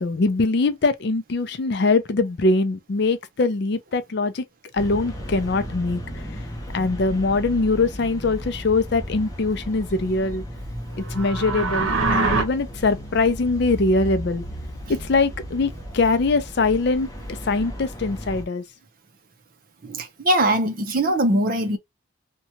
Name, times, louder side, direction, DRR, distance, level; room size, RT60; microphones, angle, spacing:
voice 1, 0.0-4.4 4.7-6.0 6.7-10.4 11.1-14.4 15.1-17.1 17.5-18.6, left 3 dB, 55° left, 0.4 m, -22 dB
sound 1, 4.8-18.4, equal, 15° left, 0.6 m, -35 dB
sound 2, 11.0-12.4, right 3 dB, 75° right, 0.8 m, -23 dB
voice 2, 19.8-21.8, right 1 dB, 45° right, 0.6 m, -21 dB
2.8 x 2.3 x 2.8 m
head